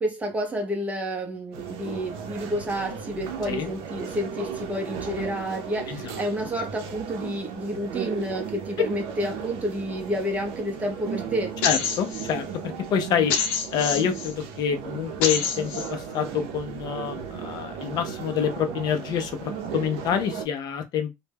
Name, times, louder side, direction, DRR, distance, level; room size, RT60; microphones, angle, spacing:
voice 1, 0.0-11.6, equal, 15° right, 0.6 m, -30 dB
sound 1, 1.5-20.5, right 7 dB, 80° right, 0.5 m, -36 dB
sound 2, 11.6-12.3 13.3-14.3 15.2-15.9, left 6 dB, 90° left, 0.6 m, -26 dB
voice 2, 11.6-13.3 13.7-21.1, left 8 dB, 45° left, 0.5 m, -27 dB
2.2 x 2.0 x 3.3 m
cardioid pair, 150°, 9 cm